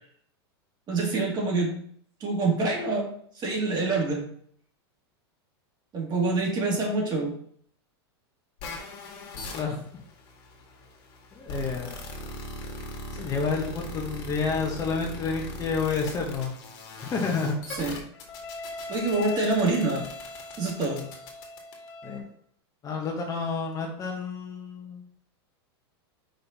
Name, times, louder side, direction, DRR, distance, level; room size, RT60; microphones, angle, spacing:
voice 1, 0.9-1.7 2.2-3.1 3.4-4.2 5.9-7.3 17.7-18.0 18.9-20.0 20.6-21.0, right 3 dB, 30° right, -1 dB, 2.3 m, -26 dB
sound 1, 8.6-22.2, left 2 dB, 50° left, 1.9 m, -39 dB
voice 2, 9.5-9.8 11.3-12.0 13.1-16.5 17.0-17.5 22.0-22.3 22.8-25.0, left 5 dB, 25° left, 0 dB, 1.3 m, -29 dB
5.3 x 4.3 x 4.2 m, 0.62 s
hypercardioid pair, 115°, 14 cm